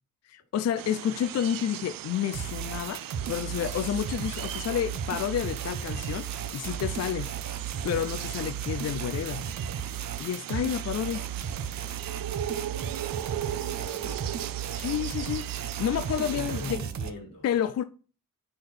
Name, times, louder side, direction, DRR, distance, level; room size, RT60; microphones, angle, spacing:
voice 1, 0.2-7.3 7.8-9.5 10.2-11.3 14.7-16.8 17.4-17.8, left 9 dB, 50° left, 0.4 m, -30 dB
sound 1, 0.8-16.7, right 12 dB, 90° right, 0.5 m, -39 dB
sound 2, 2.3-17.1, right 8 dB, 55° right, 0.7 m, -35 dB
sound 3, 3.1-4.0, left 6 dB, 70° left, 1.6 m, -50 dB
voice 2, 13.5-14.2 16.2-17.5, left 2 dB, 85° left, 3.4 m, -40 dB
6.5 x 4.3 x 5.8 m
wide cardioid pair, 165°, 33 cm